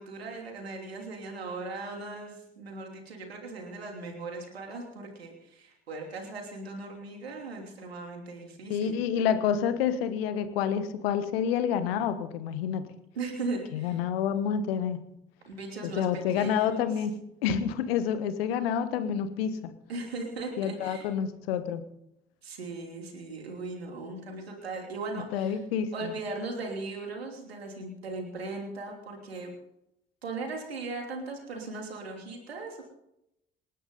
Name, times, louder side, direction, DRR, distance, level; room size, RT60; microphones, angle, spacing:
voice 1, 0.0-9.0 13.1-14.0 15.4-16.9 19.9-21.1 22.4-25.6 25.9-29.5 30.2-32.8, right 3 dB, 85° right, 2 dB, 3.1 m, -38 dB
voice 2, 8.7-12.9 13.7-15.0 15.8-17.1 17.4-19.7 20.6-21.8 25.1-26.1, left 8 dB, 75° left, 11 dB, 1.4 m, -28 dB
27.5 x 11.0 x 3.9 m, 0.81 s
figure-of-eight pair, 40°, 30 cm